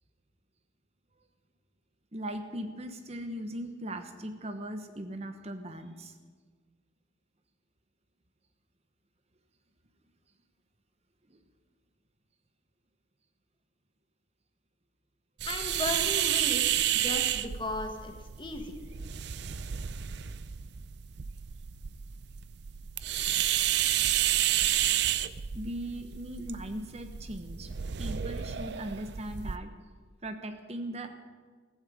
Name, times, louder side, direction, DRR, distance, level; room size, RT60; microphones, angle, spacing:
voice 1, 2.1-6.1 11.3-11.4 19.4-19.6 25.5-27.7 28.0-29.7 30.2-31.1, right 1 dB, 30° right, 8 dB, 1.1 m, -39 dB
voice 2, 15.4-18.8, left 2 dB, 25° left, 4 dB, 1.4 m, -36 dB
sound 1, 15.4-29.6, right 11 dB, 60° right, 0.5 m, -31 dB
15.5 x 15.0 x 5.0 m, 1.5 s
head